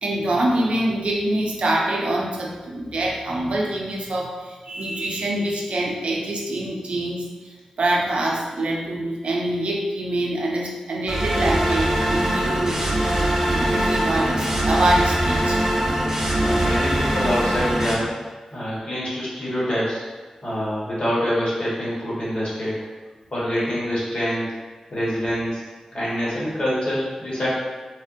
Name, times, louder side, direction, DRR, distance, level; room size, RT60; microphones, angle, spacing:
voice 1, 0.0-15.6, right 1 dB, 75° right, -2 dB, 0.5 m, -25 dB
sound 1, 11.1-17.9, right 1 dB, 25° right, 0.8 m, -22 dB
voice 2, 16.3-18.1 18.5-20.0 20.4-22.8 23.3-24.6 24.9-25.6 25.9-27.5, equal, 60° left, -8 dB, 1.3 m, -25 dB
3.4 x 2.2 x 2.6 m, 1.3 s
cardioid pair, 45°, 2 cm